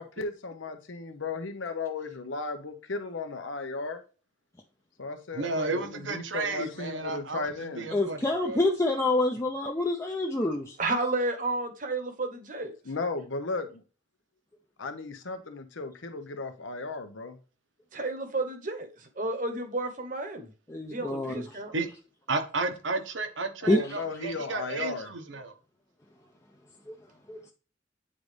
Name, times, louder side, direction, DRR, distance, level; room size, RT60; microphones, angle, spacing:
voice 1, 0.0-4.0 5.0-7.9 12.8-13.8 14.8-17.4 23.6-25.1, left 3 dB, 90° left, 0.9 m, -35 dB
voice 2, 5.3-8.6 21.7-21.9 22.3-25.5, right 3 dB, 80° right, 1.1 m, -33 dB
voice 3, 7.9-10.8 20.7-21.3 23.7-24.0 27.3-27.4, left 2 dB, 15° left, 0.5 m, -27 dB
voice 4, 10.8-12.7 17.9-20.5 20.9-21.7, right 2 dB, 45° right, 1.0 m, -31 dB
8.7 x 4.0 x 3.3 m
head